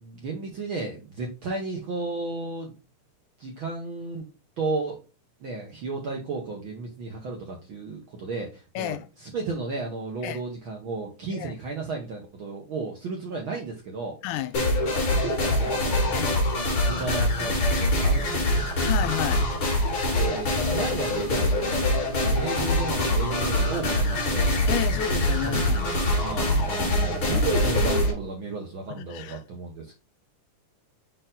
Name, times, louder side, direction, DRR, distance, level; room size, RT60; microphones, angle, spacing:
voice 1, 0.0-2.7 3.4-4.3 4.6-5.0 5.4-14.2 14.9-16.4 16.8-18.6 20.1-24.5 25.4-30.0, right 3 dB, 70° right, 1.2 m, -34 dB
voice 2, 8.8-9.1 10.2-10.4 11.3-11.5 14.2-14.6 16.1-16.4 18.8-19.5 24.7-25.9 26.4-26.7 28.9-29.4, left 12 dB, 80° left, 2.0 m, -31 dB
sound 1, 14.5-28.1, left 1 dB, 40° left, 2.7 m, -24 dB
5.6 x 4.5 x 3.7 m
omnidirectional pair, 3.7 m